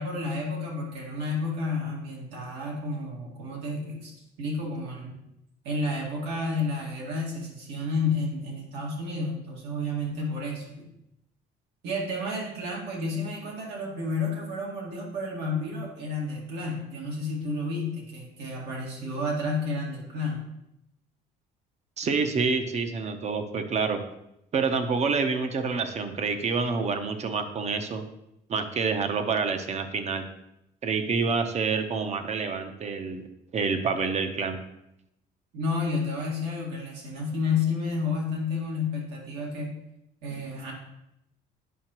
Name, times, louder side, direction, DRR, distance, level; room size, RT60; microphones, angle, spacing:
voice 1, 0.0-4.1 4.4-5.2 5.6-10.9 11.8-20.4 35.5-39.7 40.2-40.7, left 3 dB, 85° right, -2 dB, 2.2 m, -31 dB
voice 2, 22.0-24.0 24.5-28.0 28.5-30.2 30.8-33.2 33.5-34.6, right 5 dB, 40° right, 7 dB, 0.8 m, -27 dB
9.2 x 5.6 x 3.0 m, 0.83 s
cardioid pair, 110°, 17 cm